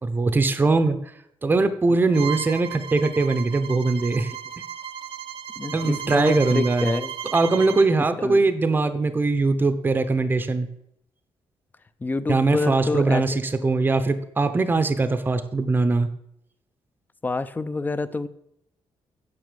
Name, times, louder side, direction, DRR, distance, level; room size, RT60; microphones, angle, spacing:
voice 1, 0.0-1.0 1.4-4.3 5.7-6.9 7.3-10.7 12.3-16.1, right 3 dB, 20° right, 11 dB, 0.8 m, -21 dB
Bowed string instrument, 2.1-7.9, right 9 dB, 60° right, 0.8 m, -35 dB
voice 2, 5.6-7.1 8.2-8.5 12.0-13.4 13.7-13.8 17.2-18.3, left 3 dB, 20° left, 13 dB, 0.6 m, -27 dB
9.5 x 7.3 x 6.8 m, 0.76 s
cardioid pair, 155°, 10 cm